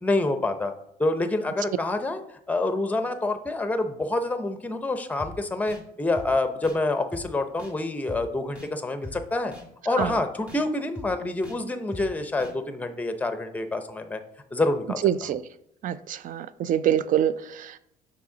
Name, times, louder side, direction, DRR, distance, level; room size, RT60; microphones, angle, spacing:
voice 1, 0.0-0.7 1.0-2.2 2.5-9.5 9.8-14.2 14.5-15.4, left 2 dB, 10° left, 8 dB, 0.6 m, -27 dB
sound 1, 5.2-5.3 5.7-5.8 6.2-6.3 6.6-6.8 7.1-7.2 7.6-7.7 8.1-8.2 8.6-8.7 9.0-9.2 9.5-9.6 10.0-10.1 10.5-10.6 11.0-11.1 11.4-11.6 11.9-12.0 12.4-12.5, left 1 dB, 5° right, 1.3 m, -40 dB
voice 2, 15.0-15.4 15.8-17.8, right 10 dB, 55° right, 15 dB, 0.4 m, -25 dB
6.1 x 4.1 x 3.8 m, 0.78 s
cardioid pair, 110°, 17 cm